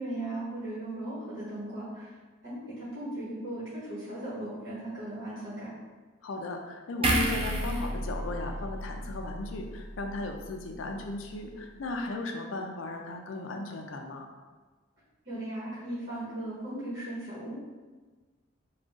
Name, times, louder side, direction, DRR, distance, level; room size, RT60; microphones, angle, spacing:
voice 1, 0.0-2.1 2.4-5.7 15.2-17.6, right 1 dB, 55° right, -11 dB, 1.4 m, -37 dB
voice 2, 6.2-14.3, left 2 dB, 85° left, 3 dB, 0.5 m, -37 dB
sound 1, 7.0-10.4 10.7-10.9, right 1 dB, 30° right, 0.4 m, -31 dB
3.7 x 2.4 x 3.6 m, 1.3 s
head